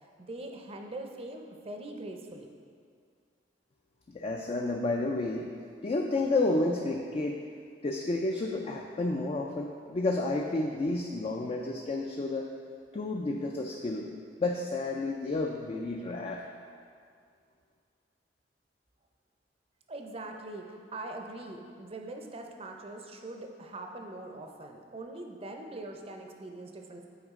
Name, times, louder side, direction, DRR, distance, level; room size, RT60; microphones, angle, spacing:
voice 1, 0.2-2.5 19.9-27.1, right 2 dB, 35° right, 3 dB, 0.6 m, -42 dB
voice 2, 4.1-5.5 5.8-7.4 7.8-12.5 12.9-14.1 14.4-16.4, left 2 dB, 35° left, 1 dB, 0.3 m, -30 dB
8.0 x 4.9 x 3.6 m, 2.2 s
head